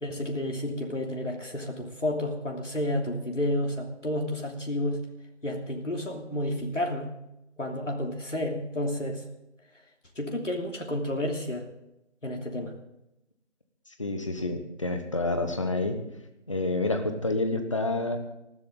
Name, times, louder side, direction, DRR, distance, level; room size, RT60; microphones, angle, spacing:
voice 1, 0.0-5.0 5.4-7.1 7.6-9.2 10.1-11.7 12.2-12.7, left 1 dB, 85° left, 1 dB, 3.1 m, -31 dB
voice 2, 14.0-16.0 16.5-18.2, left 2 dB, 25° left, 7 dB, 1.3 m, -28 dB
19.5 x 15.0 x 3.8 m, 0.91 s
figure-of-eight pair, 165°, 36 cm